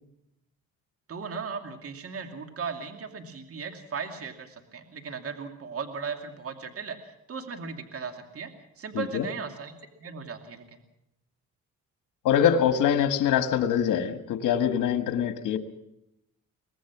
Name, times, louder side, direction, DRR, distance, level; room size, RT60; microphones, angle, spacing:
voice 1, 1.1-8.5 8.8-10.8, right 5 dB, 50° right, 6 dB, 2.5 m, -37 dB
voice 2, 8.9-9.3 12.2-15.6, left 8 dB, 85° left, 9 dB, 1.7 m, -24 dB
24.0 x 19.0 x 6.1 m, 0.83 s
cardioid pair, 90°, 30 cm